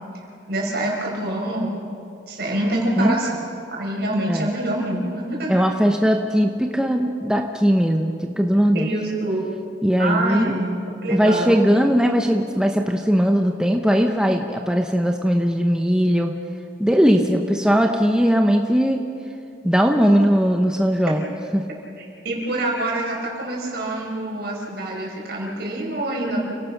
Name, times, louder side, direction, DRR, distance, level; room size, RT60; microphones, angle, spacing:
voice 1, 0.5-1.7 2.3-3.4 3.7-5.6 8.7-9.4 10.0-10.7 11.0-11.5 22.0-26.4, right 1 dB, 60° right, -1 dB, 5.2 m, -25 dB
voice 2, 5.5-8.9 9.8-10.6 11.1-16.3 16.8-19.0 19.6-21.2 21.5-21.6, equal, 5° right, 3 dB, 0.8 m, -19 dB
29.5 x 17.5 x 5.9 m, 2.5 s
head